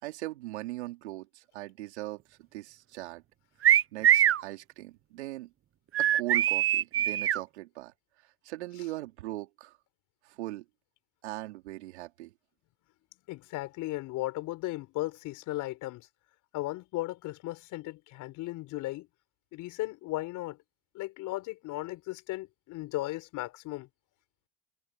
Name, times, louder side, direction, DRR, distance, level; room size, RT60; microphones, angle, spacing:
voice 1, 0.0-2.2 2.5-3.2 3.9-5.5 6.0-7.9 8.4-9.7 10.2-10.6 11.2-12.3, right 17 dB, 85° right, 3.5 m, -39 dB
sound 1, 3.6-4.4 5.9-7.4, right 11 dB, 40° right, 0.9 m, -23 dB
voice 2, 13.3-16.1 16.5-19.1 19.5-20.6 20.9-23.9, left 18 dB, 65° left, 4.3 m, -36 dB
hypercardioid pair, 65°, 33 cm